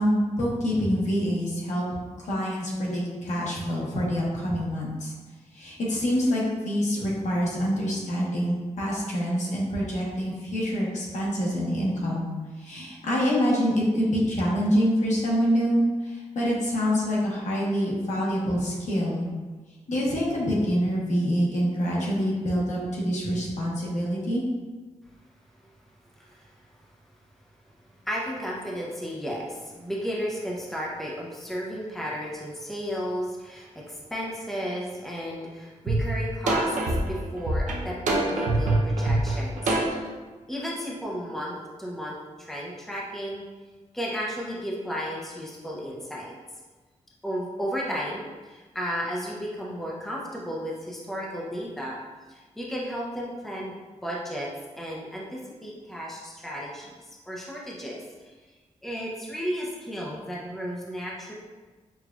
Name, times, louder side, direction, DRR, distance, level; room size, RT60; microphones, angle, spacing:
voice 1, 0.0-1.8 2.2-5.1 5.5-12.3 12.6-19.3 19.9-24.4, equal, 75° left, -5 dB, 1.0 m, -26 dB
voice 2, 26.1-26.5 27.8-39.8 40.5-43.4 43.9-46.3 47.2-52.0 52.3-53.7 54.0-54.5 54.8-58.3 58.8-61.3, equal, ahead, -4 dB, 0.5 m, -34 dB
sound 1, 35.9-36.0 36.5-40.1, right 2 dB, 80° right, 0.6 m, -24 dB
5.9 x 2.3 x 2.3 m, 1.3 s
wide cardioid pair, 160°, 13 cm